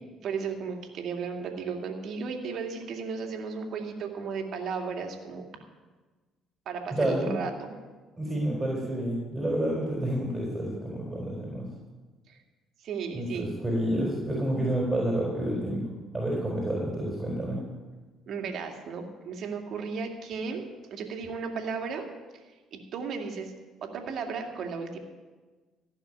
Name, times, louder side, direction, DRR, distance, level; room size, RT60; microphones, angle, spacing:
voice 1, 0.2-5.5 6.7-7.8 12.3-12.4 12.8-13.5 18.3-20.6 20.9-22.1 22.7-23.5 23.8-25.0, right 5 dB, 60° right, 3 dB, 2.2 m, -35 dB
voice 2, 6.9-7.3 8.2-11.7 13.1-15.8 16.1-17.6, right 1 dB, 15° right, -2 dB, 4.5 m, -29 dB
15.5 x 6.5 x 9.1 m, 1.3 s
hypercardioid pair, 55°, 0 cm